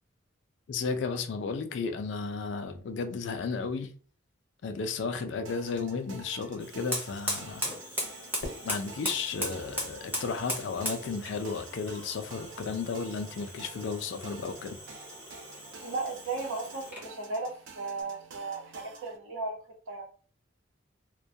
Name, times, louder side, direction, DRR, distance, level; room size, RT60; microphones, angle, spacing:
voice 1, 0.7-3.9 4.6-7.7 8.6-14.8, left 4 dB, 60° left, 0.4 m, -33 dB
sound 1, 5.4-19.2, right 4 dB, 65° right, 0.4 m, -50 dB
Fire, 6.6-17.1, equal, 10° right, 0.6 m, -38 dB
Fireworks, 8.4-10.7, left 2 dB, 85° left, 0.8 m, -46 dB
voice 2, 15.8-19.6 19.9-20.0, right 3 dB, 85° right, 0.8 m, -35 dB
2.2 x 2.2 x 2.6 m
head